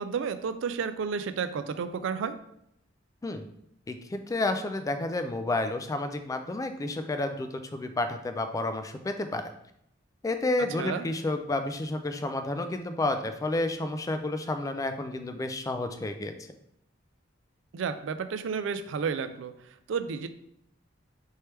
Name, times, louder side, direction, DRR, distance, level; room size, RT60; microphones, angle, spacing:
voice 1, 0.0-2.4 10.8-11.0 17.7-19.5 19.9-20.3, right 6 dB, 70° right, 10 dB, 0.4 m, -31 dB
voice 2, 3.9-9.5 10.2-16.3, left 2 dB, 20° left, 7 dB, 0.3 m, -30 dB
4.5 x 3.1 x 3.3 m, 0.75 s
head